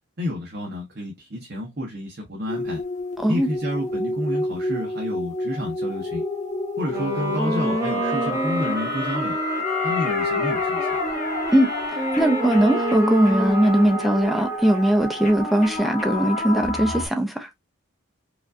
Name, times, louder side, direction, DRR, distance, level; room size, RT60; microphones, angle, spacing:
voice 1, 0.2-2.8 3.3-6.2 6.8-9.4 9.8-10.9, left 1 dB, 45° right, 0.8 m, -30 dB
sound 1, 2.5-17.1, left 1 dB, 35° left, 1.0 m, -29 dB
Wind instrument woodwind instrument, 6.8-14.5, left 1 dB, 15° right, 1.1 m, -28 dB
voice 2, 11.5-17.5, right 1 dB, ahead, 0.5 m, -20 dB
4.9 x 2.4 x 2.4 m
head